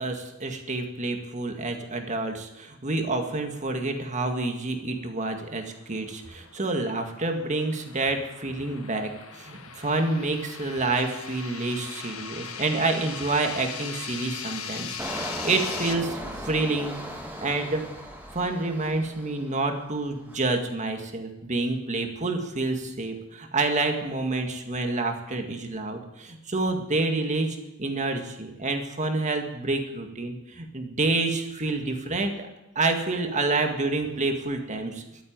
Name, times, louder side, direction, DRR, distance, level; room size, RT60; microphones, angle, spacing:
voice 1, 0.0-16.9 17.4-17.8 18.3-32.5 32.8-35.0, right 2 dB, 35° right, 4 dB, 2.0 m, -28 dB
sound 1, 5.5-15.9, left 6 dB, 90° left, 1.5 m, -39 dB
Engine, 15.0-19.6 20.0-20.4, equal, 10° right, 2.9 m, -37 dB
12.5 x 8.9 x 8.9 m, 0.94 s
head